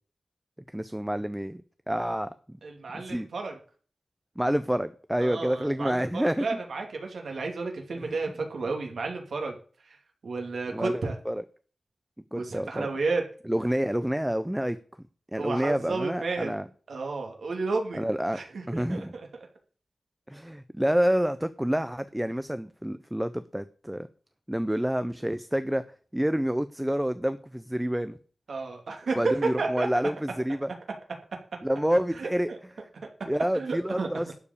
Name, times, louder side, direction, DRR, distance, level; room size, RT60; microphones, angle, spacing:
voice 1, 0.7-1.6 1.9-2.6 2.9-3.3 4.4-6.5 8.0-8.1 10.7-11.4 12.3-12.9 13.5-14.8 15.3-16.6 17.9-18.4 18.7-19.1 20.3-24.1 24.5-25.8 26.1-28.2 29.2-30.7 31.6-32.5 33.3-34.3, equal, 5° right, 0.6 m, -28 dB
voice 2, 2.6-3.6 5.2-9.6 9.8-10.0 10.2-11.1 12.4-13.2 15.4-16.5 16.9-18.0 18.3-19.1 28.5-29.2 29.6-29.9 32.2-32.6 33.5-34.1, right 3 dB, 75° right, 2.7 m, -32 dB
12.0 x 5.2 x 8.4 m
wide cardioid pair, 140°, 0 cm